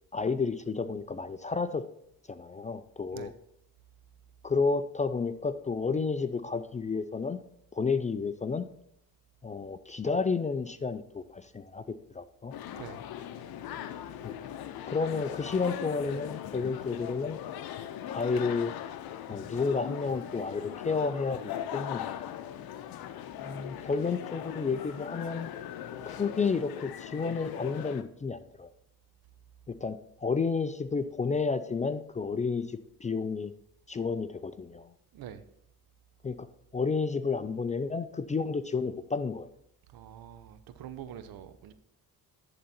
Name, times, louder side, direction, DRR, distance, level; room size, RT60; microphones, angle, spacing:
voice 1, 0.1-1.8 2.3-3.3 4.4-7.4 7.7-8.6 9.4-11.8 12.1-12.5 14.2-14.4 14.9-17.4 18.1-18.7 19.3-22.3 23.4-25.5 26.0-28.7 29.7-33.5 33.9-34.9 36.2-36.5 36.7-39.5, left 4 dB, 20° left, 12 dB, 0.3 m, -31 dB
sound 1, 12.5-28.0, left 10 dB, 70° left, 0.7 m, -40 dB
voice 2, 39.9-41.7, right 10 dB, 70° right, 12 dB, 0.8 m, -44 dB
11.0 x 3.8 x 4.3 m, 0.74 s
cardioid pair, 80°, 37 cm